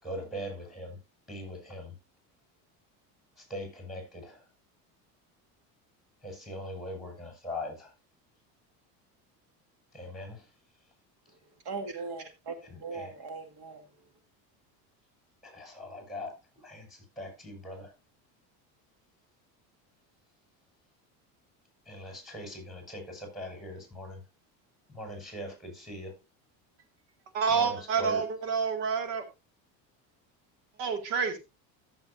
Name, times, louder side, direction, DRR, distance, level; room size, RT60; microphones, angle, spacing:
voice 1, 0.0-1.0 1.3-2.0 3.4-4.5 6.2-7.9 9.9-10.5 12.7-13.1 15.4-17.9 21.9-24.2 24.9-26.2 27.5-28.2, left 1 dB, ahead, 6.1 m, -41 dB
voice 2, 11.6-13.8, right 4 dB, 55° right, 2.4 m, -39 dB
voice 3, 27.3-29.3 30.8-31.4, right 6 dB, 75° right, 2.3 m, -28 dB
14.5 x 7.3 x 2.7 m
supercardioid pair, 105°, 43 cm